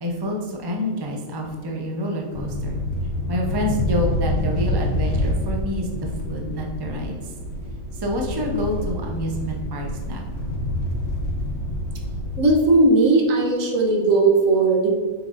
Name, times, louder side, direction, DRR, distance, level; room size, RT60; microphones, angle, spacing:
voice 1, 0.0-2.8 3.3-7.3 7.9-10.3, equal, 25° right, 0 dB, 0.5 m, -28 dB
sound 1, 2.3-12.4, left 1 dB, 75° left, 1.3 m, -27 dB
voice 2, 12.4-14.9, right 2 dB, 65° right, 1 dB, 1.3 m, -17 dB
7.4 x 6.0 x 2.6 m, 1.5 s
omnidirectional pair, 1.6 m